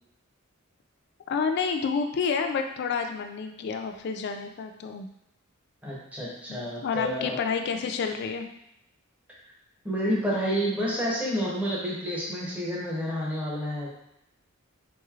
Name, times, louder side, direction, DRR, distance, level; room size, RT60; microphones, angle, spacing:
voice 1, 1.3-5.1 6.5-8.5, left 5 dB, 55° left, 5 dB, 0.3 m, -29 dB
voice 2, 5.8-7.4 9.8-13.9, equal, 5° right, -6 dB, 0.8 m, -29 dB
3.8 x 3.1 x 2.4 m, 0.81 s
head